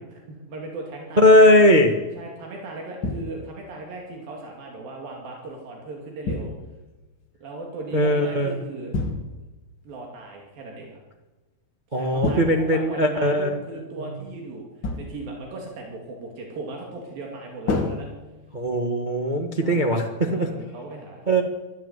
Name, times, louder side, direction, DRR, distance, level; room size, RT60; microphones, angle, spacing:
voice 1, 0.0-1.6 2.2-6.5 7.4-9.0 9.8-11.0 11.9-18.1 19.6-19.9 20.2-21.4, right 2 dB, 80° right, 0 dB, 4.5 m, -37 dB
voice 2, 1.2-1.9 7.9-8.5 11.9-13.6 18.5-20.5 21.3-21.4, left 1 dB, 65° right, 2 dB, 0.4 m, -19 dB
sound 1, 3.0-3.7 6.3-6.9 8.9-9.6 12.2-13.1 14.8-15.4 17.7-18.7, left 3 dB, 40° left, 2.1 m, -30 dB
24.0 x 13.5 x 8.2 m, 1.2 s
omnidirectional pair, 4.0 m